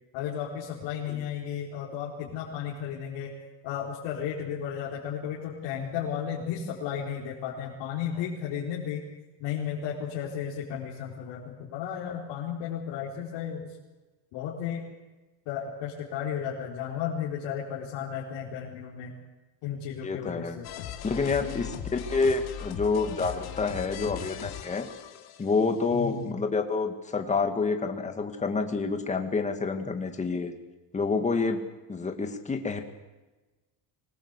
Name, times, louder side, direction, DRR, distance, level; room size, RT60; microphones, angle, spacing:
voice 1, 0.1-3.3 3.6-9.1 9.4-13.8 14.3-14.8 15.5-19.1 19.6-20.9 21.4-21.7 25.9-26.4, left 8 dB, 80° left, -4 dB, 4.4 m, -34 dB
voice 2, 20.0-20.6 21.0-24.9 25.4-30.5 30.9-31.6 31.9-32.8, left 4 dB, 15° left, 5 dB, 2.1 m, -28 dB
sound 1, 20.6-25.8, left 9 dB, 55° left, 2.8 m, -39 dB
25.0 x 20.0 x 8.3 m, 1.2 s
cardioid pair, 175°, 44 cm